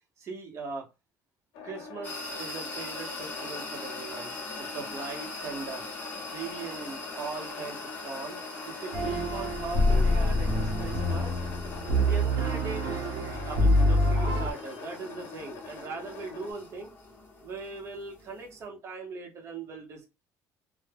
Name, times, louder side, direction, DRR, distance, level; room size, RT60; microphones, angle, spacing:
voice 1, 0.2-0.9 1.6-5.8 6.3-8.4 8.7-11.4 12.0-16.9 17.4-20.1, right 4 dB, 45° right, 1 dB, 0.8 m, -40 dB
sound 1, 1.5-16.5, left 4 dB, 85° left, 0.6 m, -44 dB
sound 2, 2.0-18.6, left 2 dB, 25° left, 0.8 m, -42 dB
sound 3, 8.9-14.5, left 1 dB, 75° right, 0.7 m, -25 dB
2.1 x 2.0 x 3.3 m, 0.27 s
cardioid pair, 135°, 7 cm